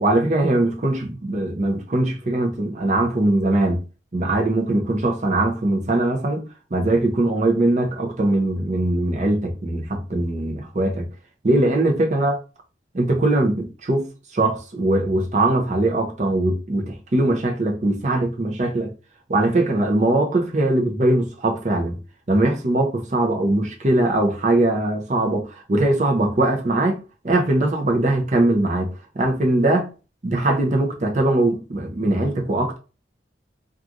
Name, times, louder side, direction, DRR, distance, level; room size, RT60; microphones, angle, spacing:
voice 1, 0.0-3.8 4.1-11.1 11.4-12.4 12.9-18.9 19.3-22.0 22.3-27.0 27.2-28.9 29.2-29.9 30.2-32.8, right 2 dB, 40° right, 0.6 m, -21 dB
3.0 x 2.4 x 2.5 m
head